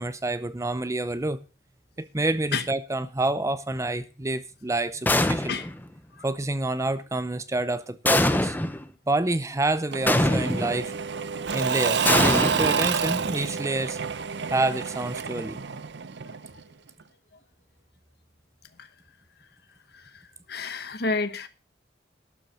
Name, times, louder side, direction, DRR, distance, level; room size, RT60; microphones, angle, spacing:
voice 1, 0.0-1.4 2.0-5.6 6.2-8.6 9.1-10.9 11.5-14.0 14.5-15.6, right 2 dB, 15° right, 0.6 m, -28 dB
sound 1, 5.1-5.8 8.1-8.8 10.1-10.8 12.1-13.3, left 1 dB, 10° left, 0.8 m, -23 dB
Engine / Mechanisms / Drill, 9.9-16.6, right 6 dB, 70° right, 0.7 m, -28 dB
voice 2, 20.5-21.5, left 4 dB, 65° left, 1.1 m, -28 dB
12.0 x 7.3 x 6.7 m
head